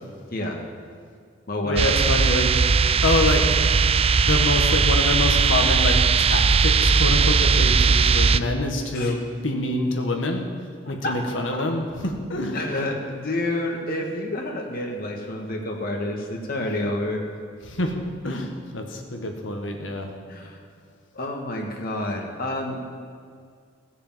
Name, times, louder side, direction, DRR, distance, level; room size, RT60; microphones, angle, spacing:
voice 1, 0.3-0.6 1.5-2.0 8.9-9.2 11.0-11.2 11.5-11.6 12.5-17.2 20.3-20.6 21.1-22.9, left 1 dB, 50° left, 0 dB, 1.7 m, -29 dB
voice 2, 1.6-2.5 3.0-3.5 4.2-9.2 9.4-10.4 10.9-12.6 17.7-17.9 18.2-20.1, left 2 dB, 90° left, 3 dB, 1.7 m, -26 dB
sound 1, 1.8-8.4, right 5 dB, 30° right, 0.3 m, -19 dB
16.5 x 6.7 x 7.5 m, 2.1 s
head